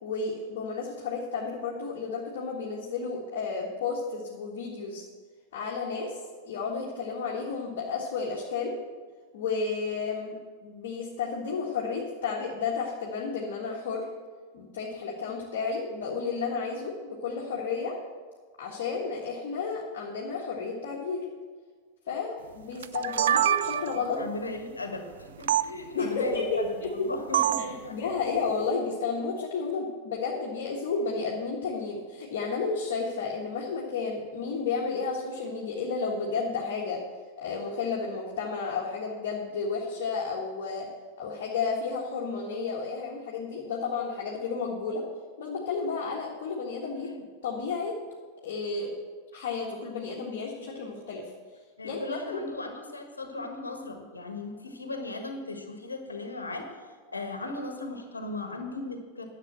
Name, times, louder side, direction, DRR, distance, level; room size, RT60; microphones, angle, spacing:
voice 1, 0.0-5.1 5.5-8.7 9.3-10.3 10.6-14.1 14.5-17.9 18.6-21.2 22.1-24.2 25.9-26.9 27.6-37.0 37.4-40.9 41.2-45.0 45.4-47.1 47.4-48.0 48.4-48.9 49.3-51.2 51.8-52.4, left 4 dB, 55° left, -3 dB, 1.6 m, -32 dB
sound 1, 22.8-24.1 25.5-25.7 27.3-27.8, right 11 dB, 60° right, 0.3 m, -25 dB
voice 2, 24.1-27.9 47.0-47.2 51.8-56.7 57.1-59.3, left 2 dB, 75° left, 5 dB, 1.5 m, -37 dB
10.5 x 6.7 x 7.6 m, 1.5 s
figure-of-eight pair, 90°, 0 cm